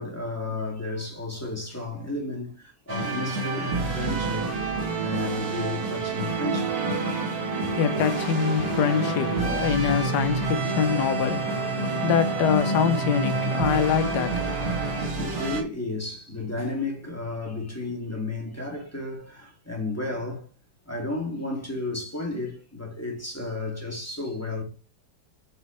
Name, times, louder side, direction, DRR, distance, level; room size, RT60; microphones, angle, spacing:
voice 1, 0.0-4.5 5.0-6.8 12.0-12.1 15.2-20.5 20.9-24.6, left 2 dB, 10° left, 1.9 m, -33 dB
sound 1, 2.9-15.6, right 3 dB, 55° right, 2.0 m, -28 dB
voice 2, 7.0-15.0, left 8 dB, 70° left, 1.4 m, -25 dB
7.7 x 5.3 x 3.1 m
omnidirectional pair, 1.9 m